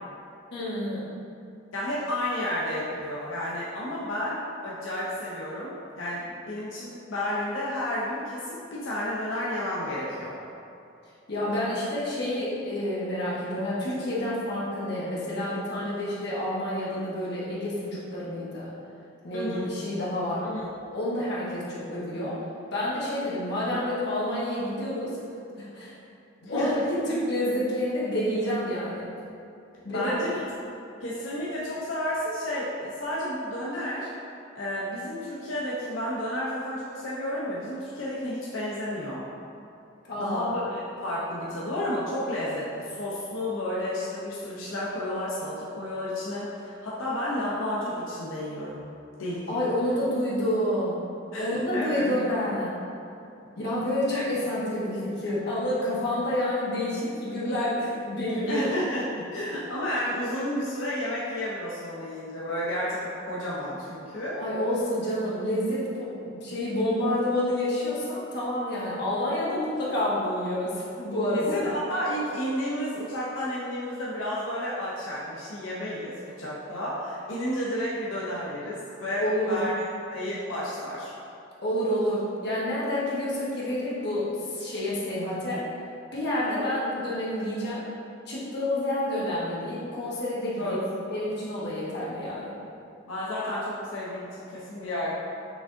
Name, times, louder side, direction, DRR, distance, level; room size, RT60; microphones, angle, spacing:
voice 1, 0.5-1.1 11.3-18.7 19.2-20.5 20.9-22.4 22.7-25.1 25.6-25.9 26.4-29.1 29.8-30.4 40.1-40.4 49.5-51.0 51.4-52.8 53.6-58.7 64.4-71.6 79.2-79.6 81.6-85.7 86.1-87.8 88.3-92.6, left 1 dB, 60° left, -8 dB, 1.2 m, -29 dB
voice 2, 1.7-10.4 19.3-19.7 20.4-20.7 26.4-26.7 29.9-30.3 31.0-34.1 34.5-39.2 40.2-48.9 49.2-49.5 51.3-52.1 54.1-54.2 58.5-64.4 71.3-79.7 80.1-81.1 86.5-86.7 90.6-90.8 93.1-95.1, left 1 dB, 90° left, -7 dB, 0.7 m, -31 dB
5.9 x 3.5 x 2.6 m, 2.6 s
head